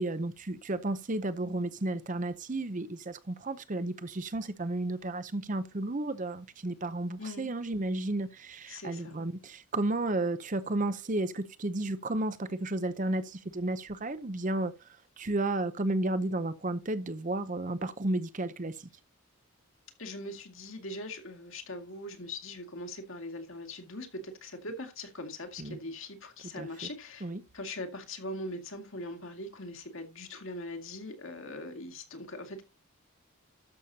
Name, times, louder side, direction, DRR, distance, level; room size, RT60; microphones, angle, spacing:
voice 1, 0.0-18.9 25.6-25.8 26.6-26.7 27.2-27.4, right 2 dB, 35° right, 0.7 m, -33 dB
voice 2, 7.2-7.5 8.7-9.2 20.0-27.3 27.5-32.6, left 1 dB, 65° left, 2.2 m, -41 dB
12.5 x 6.8 x 2.8 m
head